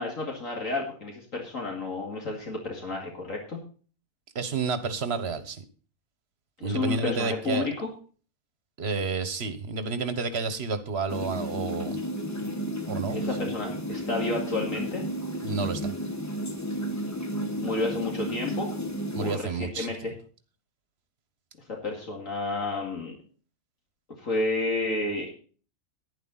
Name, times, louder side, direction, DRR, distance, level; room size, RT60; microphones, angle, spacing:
voice 1, 0.0-3.6 6.6-7.9 13.1-15.0 17.6-18.7 19.2-20.1 21.7-23.2 24.2-25.3, left 2 dB, 65° left, 0 dB, 2.6 m, -31 dB
voice 2, 4.3-5.6 6.6-7.7 8.8-12.0 12.9-13.2 15.4-15.9 19.1-20.1, right 4 dB, 50° right, 11 dB, 1.4 m, -30 dB
sound 1, 11.1-19.4, equal, 15° left, 1.0 m, -32 dB
11.5 x 10.5 x 4.0 m, 0.39 s
omnidirectional pair, 1.5 m